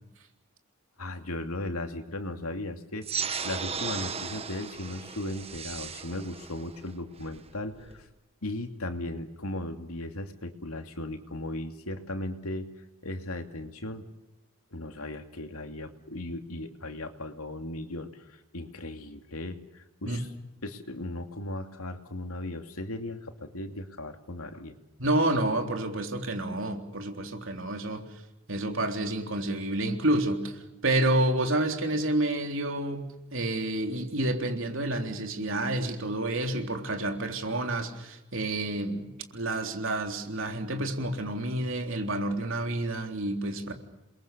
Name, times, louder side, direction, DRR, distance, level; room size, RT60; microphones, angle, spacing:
voice 1, 1.0-8.1 8.4-12.7 13.0-14.1 14.7-20.3 20.6-24.8, left 1 dB, 85° left, 2.8 m, -37 dB
sound 1, 3.0-8.0, right 6 dB, 25° right, 1.3 m, -36 dB
voice 2, 25.0-28.0 28.5-30.5 30.8-43.7, right 1 dB, 60° right, 3.7 m, -29 dB
29.5 x 22.5 x 6.9 m
head